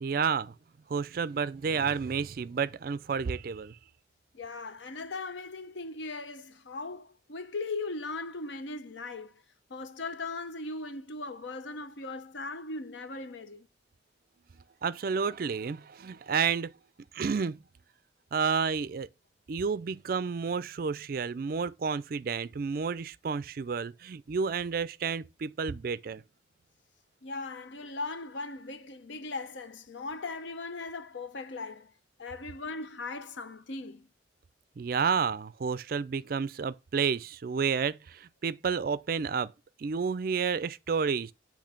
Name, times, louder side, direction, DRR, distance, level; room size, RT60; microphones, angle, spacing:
voice 1, 0.0-0.5 0.9-3.8 14.8-16.7 17.1-17.6 18.3-19.1 19.5-26.2 34.8-39.5 39.8-41.3, right 6 dB, 50° right, 0.4 m, -30 dB
voice 2, 4.3-9.4 9.7-13.7 27.2-31.9 32.2-34.1, left 3 dB, 75° left, 0.7 m, -38 dB
8.7 x 3.1 x 5.1 m
head